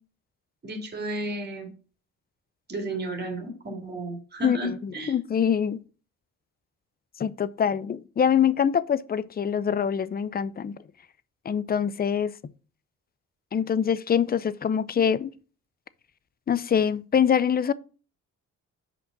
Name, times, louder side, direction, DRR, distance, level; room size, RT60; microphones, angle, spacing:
voice 1, 0.6-1.7 2.7-5.1, right 1 dB, 35° right, 2.4 m, -33 dB
voice 2, 4.4-5.8 7.2-10.8 11.4-12.3 13.5-15.3 16.5-17.7, left 8 dB, 30° left, 0.5 m, -24 dB
5.8 x 5.2 x 6.0 m
cardioid pair, 90°, 30 cm